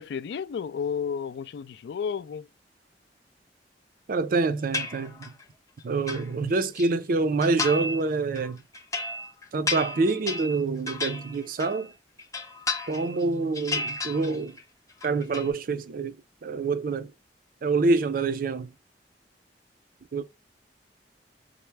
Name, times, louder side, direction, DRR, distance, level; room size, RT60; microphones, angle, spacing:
voice 1, 0.0-2.5, left 6 dB, 70° left, 0.3 m, -32 dB
voice 2, 4.1-5.3 5.8-8.6 9.5-11.9 12.9-14.6 15.0-16.2 16.4-17.1 17.6-18.7 20.1-20.2, right 3 dB, 55° right, 0.4 m, -26 dB
sound 1, 4.7-5.4 5.8-6.9 7.4-8.0 8.4-11.9 12.2-13.2 13.5-14.6 14.9-15.5, left 3 dB, 20° left, 0.6 m, -33 dB
4.3 x 2.0 x 3.2 m
head